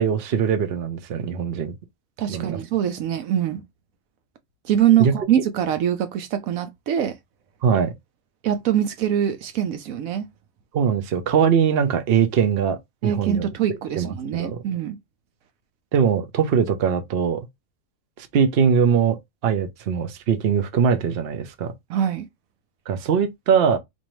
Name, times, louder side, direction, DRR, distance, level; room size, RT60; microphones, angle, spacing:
voice 1, 0.0-1.7 2.3-2.6 5.0-5.1 7.6-7.9 10.7-13.5 14.0-14.6 15.9-17.5 18.2-19.2 19.4-21.7 22.9-23.8, right 7 dB, 55° right, 0.9 m, -21 dB
voice 2, 2.2-3.6 4.6-7.2 8.4-10.3 13.0-15.0 21.9-22.3, right 10 dB, 80° right, 1.1 m, -23 dB
4.5 x 2.6 x 3.0 m
omnidirectional pair, 1.4 m